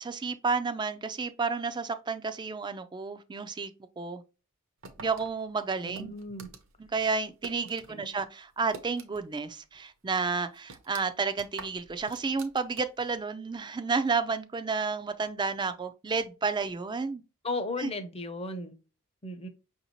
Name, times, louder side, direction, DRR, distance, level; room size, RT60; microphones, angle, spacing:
voice 1, 0.0-4.2 5.0-6.1 6.8-17.2 17.8-17.9, right 4 dB, 20° right, 0.3 m, -31 dB
sound 1, 4.8-7.9 8.2-9.5 9.7-9.8 10.3-13.1, right 4 dB, 60° right, 0.7 m, -47 dB
voice 2, 5.8-6.5 7.9-8.1 17.4-18.8 19.2-19.5, left 2 dB, 25° left, 0.6 m, -35 dB
5.6 x 2.7 x 2.9 m
head